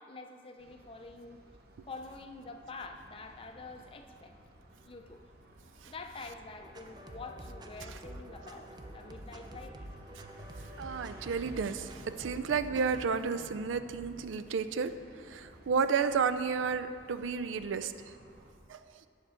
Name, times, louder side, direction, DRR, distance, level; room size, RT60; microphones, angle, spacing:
voice 1, 0.0-1.4 1.9-4.4 4.8-5.2 5.8-9.9 11.2-11.3, left 3 dB, 30° left, 6 dB, 0.5 m, -47 dB
sound 1, 0.6-18.5, right 1 dB, 55° right, 0.9 m, -54 dB
sound 2, 6.6-13.0, right 1 dB, 20° right, 0.5 m, -47 dB
voice 2, 10.8-14.9 15.2-18.1 18.7-19.1, right 5 dB, 80° right, 11 dB, 0.4 m, -32 dB
10.0 x 6.6 x 4.4 m, 2.3 s
head